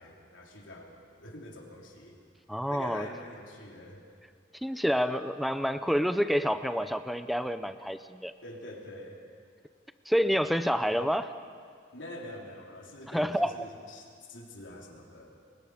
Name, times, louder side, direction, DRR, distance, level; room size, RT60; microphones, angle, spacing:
voice 1, 0.0-2.2 2.7-4.0 8.4-9.2 11.9-15.4, left 1 dB, 90° left, -1 dB, 3.8 m, -45 dB
voice 2, 2.5-3.1 4.6-8.3 10.1-11.3 13.1-13.6, equal, ahead, 10 dB, 0.5 m, -28 dB
30.0 x 22.5 x 5.1 m, 2.2 s
head